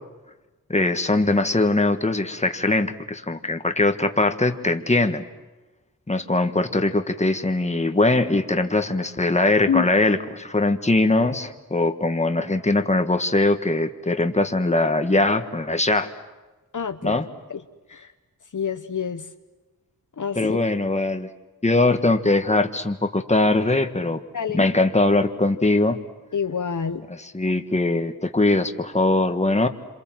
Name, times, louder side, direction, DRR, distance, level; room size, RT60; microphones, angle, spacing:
voice 1, 0.7-5.2 6.1-16.1 17.0-17.2 20.3-21.3 21.6-24.2 24.5-26.0 27.2-29.7, left 2 dB, 20° left, 7 dB, 1.6 m, -21 dB
voice 2, 16.7-17.2 17.5-17.6 17.9-18.1 18.5-19.3 20.2-20.6 24.3-24.7 26.3-27.0, left 7 dB, 55° left, 7 dB, 1.1 m, -27 dB
27.0 x 26.5 x 7.7 m, 1.1 s
wide cardioid pair, 70°, 35 cm